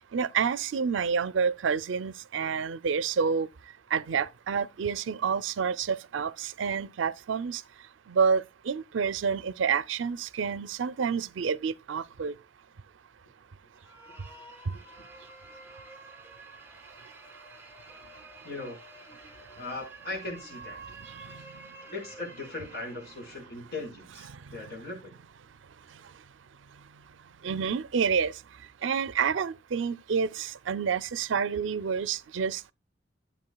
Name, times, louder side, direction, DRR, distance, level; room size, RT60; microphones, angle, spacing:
voice 1, 0.0-3.5 3.9-7.6 8.1-12.3 21.1-21.4 24.3-24.4 27.4-28.3 28.8-32.7, right 6 dB, 80° right, 0.5 m, -28 dB
sound 1, 13.7-23.6, right 3 dB, 10° right, 1.4 m, -49 dB
voice 2, 18.4-18.8 19.6-20.8 21.9-25.1, left 2 dB, 55° left, 4.5 m, -39 dB
12.5 x 8.1 x 2.2 m
head